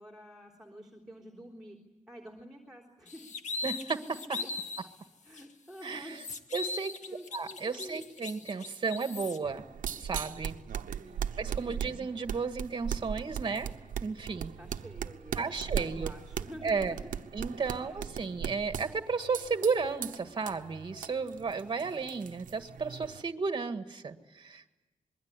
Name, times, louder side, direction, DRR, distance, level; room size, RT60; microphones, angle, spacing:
voice 1, 0.0-1.8 2.1-3.3 4.3-4.5 5.2-6.2 7.1-8.1 11.0-11.4 14.6-17.2 17.8-18.0, equal, 5° right, 1 dB, 3.7 m, -49 dB
sound 1, 3.1-4.9 5.3-5.4 5.8-9.4, left 4 dB, 65° left, 1.8 m, -39 dB
voice 2, 3.6-4.4 5.8-6.2 6.5-7.0 7.3-9.6 10.0-10.5 11.4-13.7 14.0-14.5 15.4-16.1 16.6-17.0 17.3-24.7, right 5 dB, 35° right, 8 dB, 1.8 m, -33 dB
sound 2, 9.4-23.2, right 8 dB, 80° right, 1.1 m, -39 dB
26.0 x 22.0 x 9.8 m, 1.1 s
wide cardioid pair, 145°, 13 cm